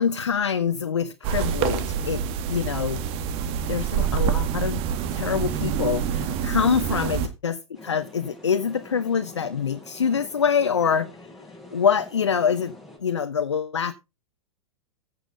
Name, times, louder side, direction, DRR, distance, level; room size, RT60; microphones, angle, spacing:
voice 1, 0.0-2.2 2.5-3.0 3.7-4.8 5.1-11.3 11.7-12.7 13.0-13.9, left 7 dB, 75° left, 1.0 m, -25 dB
sound 1, 1.2-7.3, right 8 dB, 40° right, 1.6 m, -26 dB
sound 2, 7.7-13.0, left 2 dB, ahead, 5.6 m, -46 dB
15.0 x 7.5 x 3.9 m
figure-of-eight pair, 100°, 15 cm